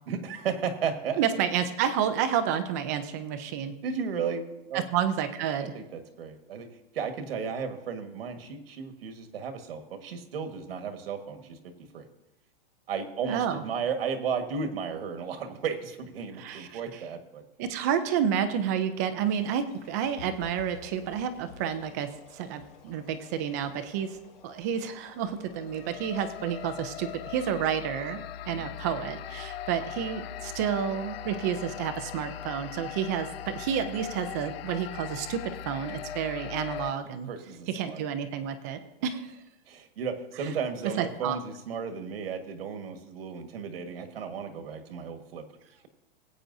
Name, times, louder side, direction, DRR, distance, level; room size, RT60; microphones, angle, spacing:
voice 1, 0.1-1.2 3.8-4.8 5.7-6.7 6.9-11.6 11.9-12.1 12.9-17.4 28.5-28.6 37.3-38.0 39.7-45.9, right 6 dB, 80° right, 6 dB, 1.6 m, -34 dB
voice 2, 1.2-3.8 4.7-5.7 13.2-13.6 16.4-17.0 17.6-24.2 24.4-37.3 37.7-39.4 40.4-40.5 41.0-41.4, right 8 dB, 20° right, 9 dB, 0.3 m, -30 dB
sound 1, 19.2-27.6, left 4 dB, 70° left, 2.8 m, -52 dB
sound 2, 25.4-36.9, left 10 dB, 85° left, 0.5 m, -40 dB
20.5 x 8.7 x 2.6 m, 0.97 s
supercardioid pair, 170°, 29 cm